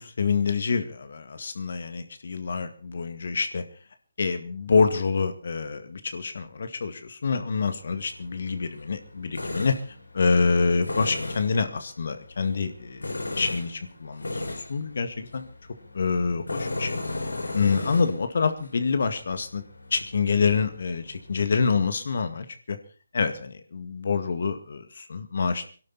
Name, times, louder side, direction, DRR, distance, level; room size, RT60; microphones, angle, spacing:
voice 1, 0.0-3.6 4.2-9.8 10.1-14.4 14.7-15.5 15.9-17.0 17.5-19.6 19.9-22.8 23.1-25.6, left 5 dB, 55° left, 9 dB, 1.9 m, -26 dB
Tools, 7.8-21.9, left 2 dB, 80° left, 3.6 m, -37 dB
23.0 x 12.0 x 4.1 m, 0.38 s
figure-of-eight pair, 150°, 0 cm